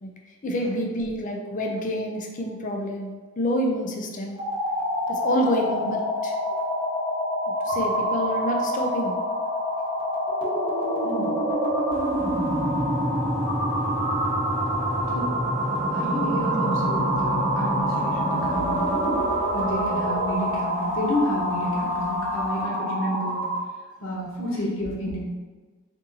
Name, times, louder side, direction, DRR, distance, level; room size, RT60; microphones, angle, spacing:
voice 1, 0.4-4.4 5.1-6.3 7.6-9.2, equal, 40° left, 1 dB, 0.5 m, -27 dB
sound 1, 4.3-23.7, equal, 25° right, 0.7 m, -26 dB
voice 2, 11.0-11.4 15.1-15.3 15.9-18.9 19.5-23.5 24.0-25.2, equal, 70° left, -4 dB, 1.0 m, -30 dB
sound 2, 11.9-22.6, right 1 dB, 15° left, 1.4 m, -45 dB
3.7 x 2.7 x 2.7 m, 1.4 s
head